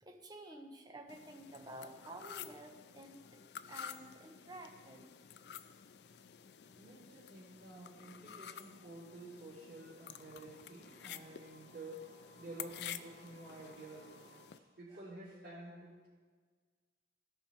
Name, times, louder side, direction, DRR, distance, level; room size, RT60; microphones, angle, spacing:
voice 1, 0.0-3.4 3.7-5.1 14.9-15.0, right 1 dB, 25° right, 3 dB, 1.0 m, -51 dB
sound 1, 1.1-14.6, left 9 dB, 70° left, 0.4 m, -51 dB
sound 2, 4.4-14.5, right 2 dB, 65° right, 3.1 m, -66 dB
voice 2, 6.8-12.0 12.3-16.1, right 2 dB, 80° right, -13 dB, 3.5 m, -51 dB
16.5 x 5.6 x 4.4 m, 1.5 s
head